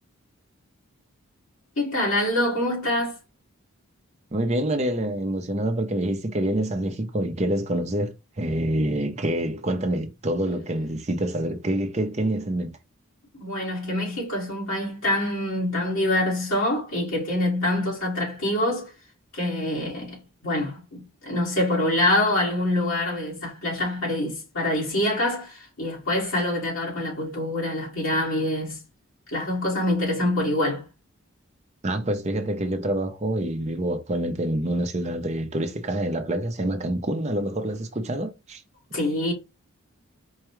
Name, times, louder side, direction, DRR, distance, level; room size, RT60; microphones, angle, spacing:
voice 1, 1.8-3.2 13.3-18.9 19.3-28.8 29.3-30.9 38.9-39.3, left 1 dB, 70° left, 2.1 m, -25 dB
voice 2, 4.3-12.8 31.8-38.6, right 1 dB, 30° right, 0.6 m, -26 dB
4.6 x 2.3 x 3.0 m
head